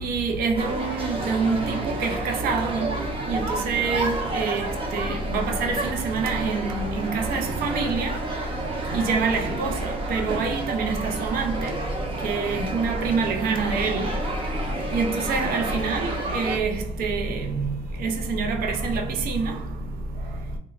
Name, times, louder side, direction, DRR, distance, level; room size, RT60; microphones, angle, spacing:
voice 1, 0.0-2.9 3.3-4.7 4.9-8.1 8.9-11.7 12.2-14.1 14.9-17.7 18.0-19.6, right 4 dB, 60° right, 0.5 m, -26 dB
sound 1, 0.5-16.6, right 2 dB, 30° right, 0.8 m, -31 dB
3.1 x 2.1 x 2.4 m
cardioid pair, 110°, 17 cm